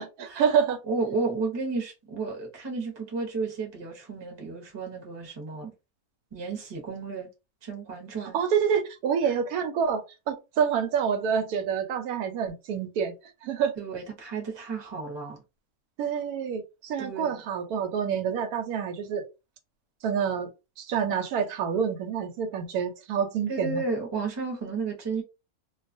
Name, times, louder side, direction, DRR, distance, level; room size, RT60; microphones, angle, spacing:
voice 1, 0.0-0.8 8.3-13.1 13.4-13.7 16.0-19.2 20.0-20.5 20.8-23.8, right 7 dB, 90° right, 1.1 m, -27 dB
voice 2, 0.9-5.7 6.3-7.3 7.6-8.4 9.2-9.3 13.8-15.4 17.0-17.4 23.5-25.2, right 4 dB, 25° right, 0.6 m, -32 dB
2.3 x 2.3 x 2.5 m
omnidirectional pair, 1.5 m